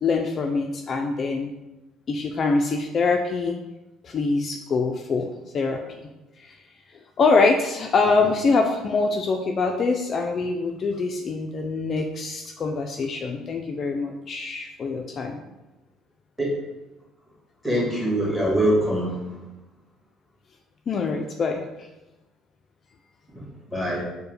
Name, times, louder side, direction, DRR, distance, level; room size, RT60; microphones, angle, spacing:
voice 1, 0.0-1.5 2.1-3.6 4.0-5.8 6.4-6.5 7.2-15.4 20.9-21.9, left 4 dB, 45° left, 3 dB, 0.3 m, -24 dB
voice 2, 17.6-19.1 23.3-24.0, right 1 dB, ahead, -4 dB, 1.5 m, -23 dB
4.6 x 2.1 x 3.2 m, 1.0 s
supercardioid pair, 75°, 0 cm